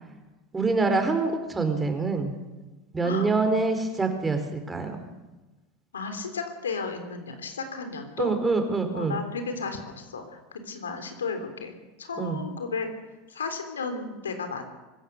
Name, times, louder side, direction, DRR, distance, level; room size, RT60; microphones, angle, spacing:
voice 1, 0.5-2.3 2.9-5.0 8.2-9.2 12.2-12.4, right 3 dB, 15° right, 6 dB, 4.5 m, -25 dB
voice 2, 5.9-8.3 8.9-11.7 12.0-12.9 13.3-14.6, left 4 dB, 90° left, 6 dB, 3.5 m, -34 dB
24.5 x 15.0 x 7.0 m, 1.1 s
hypercardioid pair, 85°, 0 cm